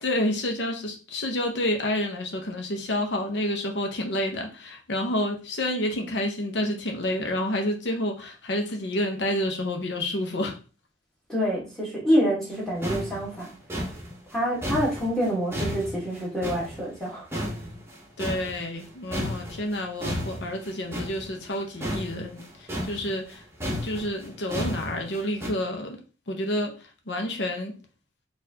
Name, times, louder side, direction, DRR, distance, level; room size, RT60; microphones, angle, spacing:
voice 1, 0.0-10.6 18.2-23.4 23.7-26.0 26.3-27.8, left 1 dB, 75° left, 0.8 m, -29 dB
voice 2, 11.3-13.5 14.3-17.3, equal, 5° left, 1.3 m, -26 dB
sound 1, 12.5-12.6 12.8-17.1 17.3-18.9 19.1-25.5, equal, 15° right, 0.8 m, -33 dB
4.1 x 2.5 x 2.7 m
head